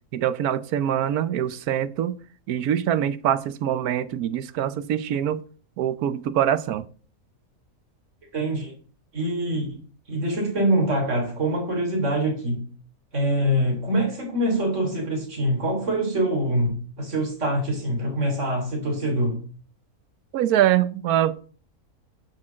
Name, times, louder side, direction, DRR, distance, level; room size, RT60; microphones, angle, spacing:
voice 1, 0.1-2.2 2.5-5.4 5.8-6.9 20.3-21.5, right 10 dB, 90° right, 1.2 m, -24 dB
voice 2, 8.3-8.7 9.1-9.8 10.1-12.6 13.1-19.4, right 1 dB, 55° right, 3.8 m, -24 dB
8.6 x 6.6 x 7.4 m
omnidirectional pair, 1.5 m